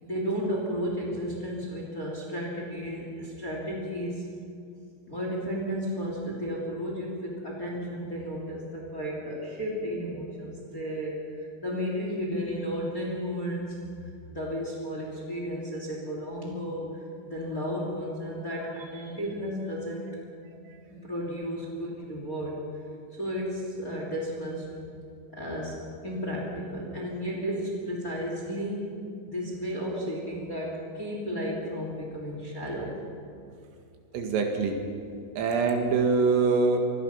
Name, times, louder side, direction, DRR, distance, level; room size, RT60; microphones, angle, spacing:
voice 1, 0.0-4.3 5.1-20.1 20.9-22.6 23.1-24.7 25.3-28.9 29.3-32.9, equal, 20° left, -1 dB, 2.7 m, -33 dB
voice 2, 34.1-34.8 35.4-36.8, right 4 dB, 80° right, 4 dB, 4.5 m, -24 dB
27.0 x 19.5 x 5.8 m, 2.4 s
omnidirectional pair, 6.0 m